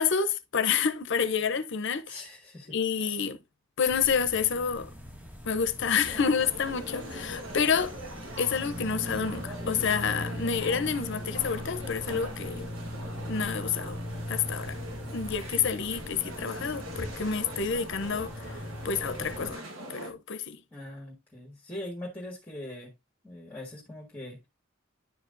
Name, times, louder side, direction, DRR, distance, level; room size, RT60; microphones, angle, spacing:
voice 1, 0.0-2.2 2.7-3.4 3.8-4.9 5.5-8.0 8.4-12.7 13.3-14.0 14.3-14.8 15.1-18.6 18.8-19.6 19.9-20.6, left 6 dB, 60° left, 0.7 m, -28 dB
voice 2, 2.1-2.8 20.7-22.9 23.2-24.4, left 1 dB, 10° left, 1.6 m, -41 dB
sound 1, 3.9-19.5, equal, 10° right, 1.1 m, -40 dB
sound 2, 6.0-20.1, equal, 70° right, 1.4 m, -42 dB
10.5 x 4.7 x 2.5 m
head